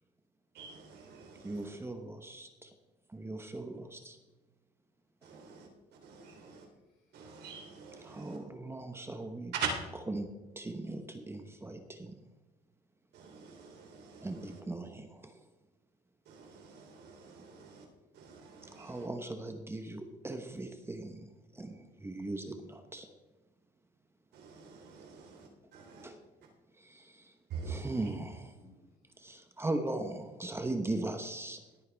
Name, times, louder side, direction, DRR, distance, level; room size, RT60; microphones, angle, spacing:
voice 1, 0.5-1.8 5.2-6.6 7.1-8.4 9.5-9.7 13.1-14.6 16.2-17.9 18.1-19.1 24.3-26.1 27.5-28.1, right 7 dB, 75° right, 3.1 m, -44 dB
voice 2, 1.4-2.7 3.1-4.2 8.0-9.5 10.1-10.3 10.6-12.1 14.2-15.4 18.7-21.2 21.5-23.1 26.0-26.2 26.8-27.3 27.6-28.6 29.2-31.6, right 2 dB, 15° right, 1.0 m, -39 dB
voice 3, 6.0-7.5 28.6-29.3, left 2 dB, 35° left, 4.4 m, -64 dB
17.5 x 9.1 x 3.5 m
cardioid pair, 110°, 17 cm